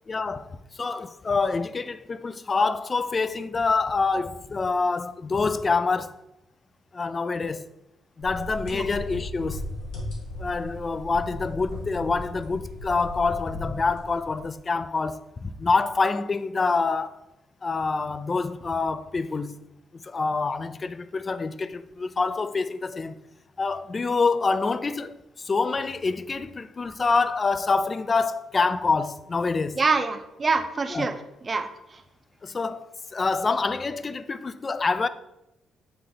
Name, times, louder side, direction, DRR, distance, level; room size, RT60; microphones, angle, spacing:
voice 1, 0.1-6.2 6.9-7.7 8.2-9.6 10.4-17.2 17.6-19.6 20.0-23.2 23.6-29.8 30.9-31.1 32.4-35.1, left 4 dB, 30° left, 0.3 m, -26 dB
sound 1, 8.2-14.5, left 1 dB, 85° left, 1.9 m, -37 dB
voice 2, 29.8-32.0, right 4 dB, 30° right, 0.6 m, -26 dB
7.7 x 3.3 x 3.9 m
cardioid pair, 90°, 0 cm